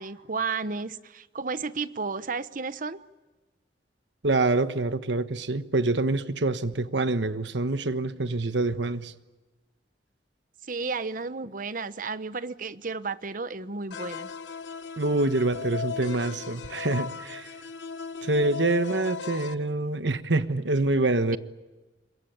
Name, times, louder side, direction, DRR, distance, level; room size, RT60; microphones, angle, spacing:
voice 1, 0.0-3.0 10.7-14.3, right 4 dB, 50° right, 1.0 m, -32 dB
voice 2, 4.2-9.1 15.0-17.5 18.2-21.4, right 2 dB, 80° right, 1.3 m, -26 dB
sound 1, 13.9-19.5, left 6 dB, 90° left, 1.2 m, -37 dB
26.5 x 22.5 x 8.9 m
head